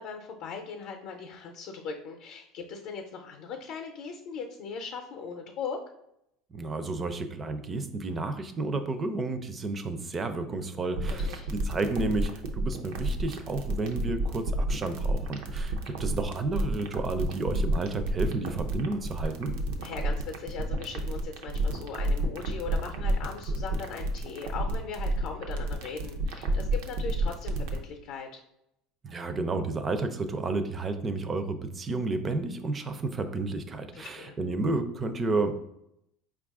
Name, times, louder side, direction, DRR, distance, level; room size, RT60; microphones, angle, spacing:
voice 1, 0.0-5.8 11.1-11.5 19.8-28.4 33.9-34.4, left 5 dB, 65° left, 3 dB, 0.5 m, -39 dB
voice 2, 6.5-19.5 29.0-35.5, right 3 dB, 25° right, 9 dB, 0.4 m, -31 dB
sound 1, 11.0-27.8, right 2 dB, 80° right, 0.5 m, -30 dB
4.5 x 2.4 x 3.5 m, 0.78 s
supercardioid pair, 135°, 0 cm